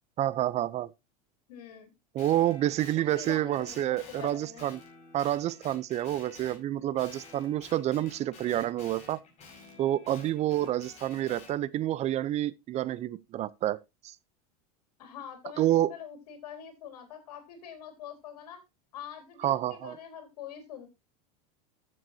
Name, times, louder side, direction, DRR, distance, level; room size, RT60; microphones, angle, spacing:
voice 1, 0.2-0.9 2.1-4.8 5.1-9.2 9.8-13.8 14.0-14.1 15.6-15.9 19.4-20.0, right 13 dB, 35° right, 0.6 m, -28 dB
voice 2, 1.5-1.9 3.0-4.7 15.0-18.6 18.9-20.9, left 8 dB, 85° left, 3.9 m, -45 dB
Guitar, 2.2-6.6 7.0-11.5, left 4 dB, 35° left, 5.3 m, -51 dB
14.0 x 7.7 x 2.7 m
supercardioid pair, 120°, 20 cm